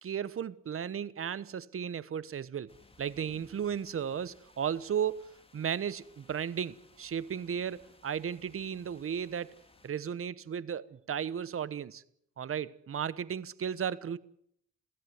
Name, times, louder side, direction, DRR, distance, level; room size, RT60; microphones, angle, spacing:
voice 1, 0.0-9.5 9.8-12.0 12.4-14.2, right 8 dB, 45° right, 1.2 m, -35 dB
sound 1, 2.7-9.9, left 2 dB, 20° left, 3.3 m, -61 dB
22.5 x 15.5 x 9.4 m
cardioid pair, 90°, 30 cm